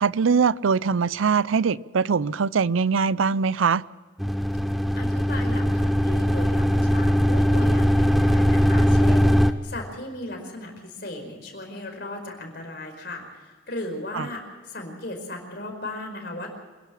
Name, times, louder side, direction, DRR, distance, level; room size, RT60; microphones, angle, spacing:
voice 1, 0.0-3.8 14.1-14.3, right 5 dB, 85° right, 20 dB, 0.5 m, -22 dB
sound 1, 4.2-9.5, equal, ahead, 0.8 m, -20 dB
voice 2, 4.7-16.5, left 1 dB, 55° left, 3 dB, 5.0 m, -36 dB
27.0 x 11.5 x 8.6 m, 1.5 s
head